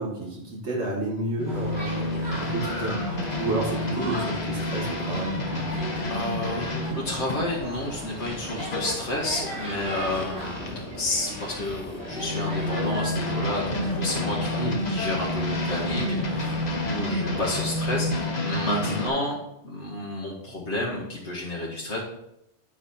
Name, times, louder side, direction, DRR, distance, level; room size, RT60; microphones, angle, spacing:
voice 1, 0.0-3.0 3.4-5.6 14.5-14.7 18.8-18.9, right 2 dB, 85° right, -3 dB, 2.2 m, -31 dB
sound 1, 1.4-10.8 11.3-19.1, left 1 dB, 40° left, 1.1 m, -30 dB
sound 2, 1.5-18.3, equal, 70° right, 3.7 m, -37 dB
voice 2, 6.1-22.0, left 1 dB, 90° left, -4 dB, 1.7 m, -31 dB
9.6 x 4.9 x 4.2 m, 0.81 s
omnidirectional pair, 1.1 m